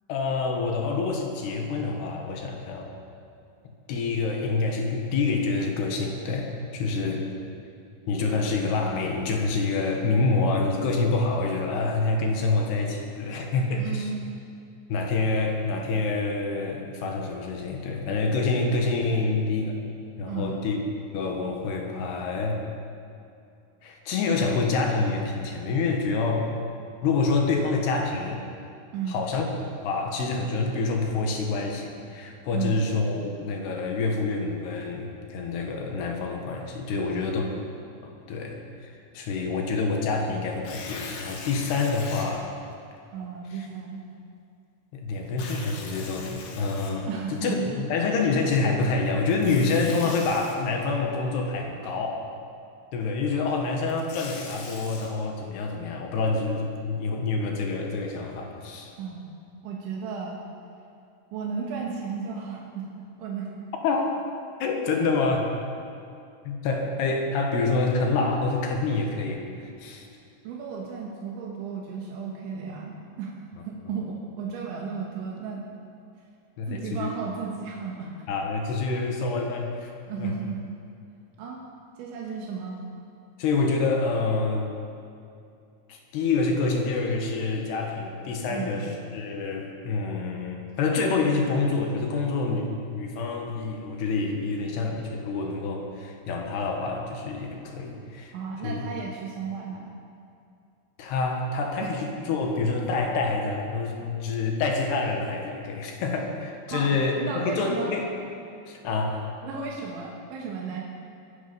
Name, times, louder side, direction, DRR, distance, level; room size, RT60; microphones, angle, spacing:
voice 1, 0.1-2.9 3.9-7.3 8.1-14.1 14.9-19.8 20.2-20.8 21.1-22.6 23.8-26.5 27.0-28.4 29.1-29.5 29.8-37.4 38.0-42.5 43.5-43.7 44.9-52.3 52.9-58.9 63.8-64.2 64.6-65.5 66.5-70.1 73.8-74.0 76.6-77.1 78.3-79.9 80.2-80.3 83.4-84.7 85.9-98.4 98.6-98.9 101.0-108.1 108.7-109.3, left 3 dB, 65° left, 2 dB, 3.3 m, -27 dB
voice 2, 13.8-14.2 20.3-20.6 28.9-29.2 32.5-32.9 36.9-37.3 43.1-44.0 47.1-47.7 59.0-59.3 59.6-60.4 61.3-62.9 63.2-63.5 70.5-75.7 76.7-78.1 80.1-80.6 81.4-81.6 82.0-82.8 88.5-88.9 98.3-99.9 101.8-101.9 106.7-108.0 109.4-110.8, right 5 dB, 80° right, -2 dB, 3.8 m, -34 dB
Tearing, 40.5-42.3 42.9-43.0 45.3-47.4 49.3-50.6 53.7-55.1, left 4 dB, 85° left, 4.3 m, -41 dB
22.5 x 11.0 x 5.4 m, 2.5 s
omnidirectional pair, 5.4 m